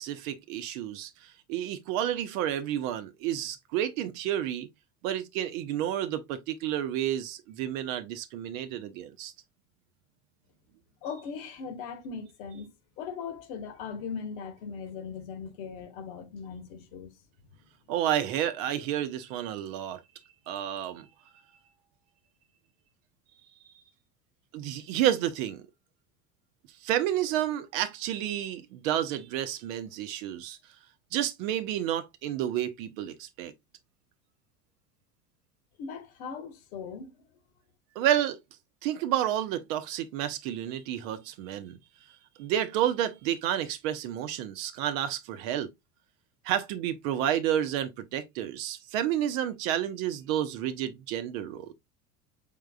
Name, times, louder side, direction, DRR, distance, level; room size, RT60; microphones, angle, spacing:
voice 1, 0.0-4.7 5.0-9.3 17.9-20.0 20.5-21.1 24.5-25.6 26.8-30.6 31.1-33.5 38.0-38.4 38.8-41.8 42.4-45.7 46.4-51.7, right 11 dB, 60° right, 0.8 m, -30 dB
voice 2, 11.0-12.7 13.0-17.1 17.5-17.6 35.8-37.2, left 6 dB, 60° left, 1.2 m, -39 dB
4.6 x 3.6 x 2.2 m
hypercardioid pair, 80°, 47 cm